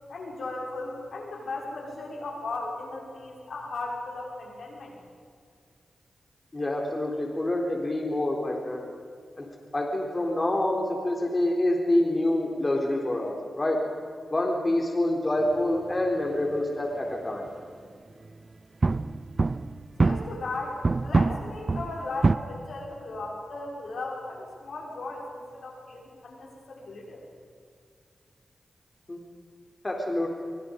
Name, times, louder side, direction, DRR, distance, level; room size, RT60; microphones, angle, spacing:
voice 1, 0.1-4.9 20.0-27.2, left 2 dB, 75° left, -1 dB, 6.2 m, -36 dB
voice 2, 6.5-8.8 9.4-9.5 9.7-13.8 14.3-17.4 29.1-29.2 29.8-30.3, left 1 dB, 30° left, 0 dB, 3.9 m, -26 dB
sound 1, 18.1-18.3 18.8-20.5 20.8-22.4, right 3 dB, 45° right, 0.6 m, -25 dB
25.5 x 24.0 x 5.4 m, 2.3 s
cardioid pair, 60°, 0 cm